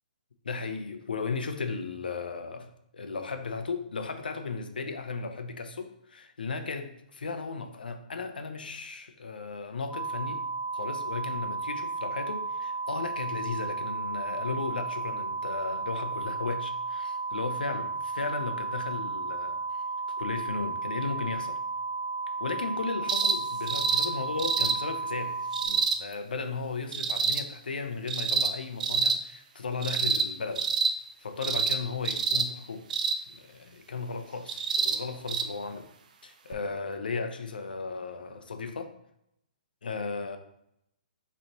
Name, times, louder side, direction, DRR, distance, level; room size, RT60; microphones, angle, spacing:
voice 1, 0.4-10.4 10.7-19.8 20.2-21.6 22.4-25.4 25.6-30.7 31.2-32.9 33.3-35.9 36.2-38.9 39.8-40.4, left 4 dB, 90° left, 7 dB, 0.7 m, -35 dB
sound 1, 9.9-25.7, right 4 dB, 25° left, 1.6 m, -34 dB
sound 2, 23.1-23.4 23.7-24.1 24.4-24.8 25.5-26.0 26.9-27.4 28.1-28.5 28.8-29.2 29.8-30.3 30.5-30.9 31.4-31.8 32.0-32.5 32.9-33.2 34.5-35.0 35.3-35.4 36.5-36.6, right 5 dB, 60° right, 0.5 m, -26 dB
5.2 x 3.3 x 2.9 m, 0.75 s
hypercardioid pair, 155°, 5 cm